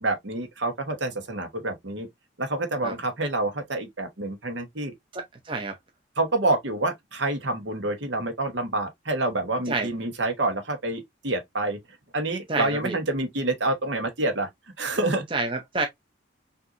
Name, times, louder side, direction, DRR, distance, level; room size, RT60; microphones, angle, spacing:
voice 1, 0.0-2.1 2.4-4.9 6.2-11.8 12.1-14.5 14.8-15.2, right 2 dB, 70° right, 1.3 m, -27 dB
voice 2, 5.1-5.8 9.7-9.9 12.5-13.0 15.3-15.9, right 3 dB, 25° right, 0.6 m, -28 dB
5.7 x 2.7 x 2.6 m
head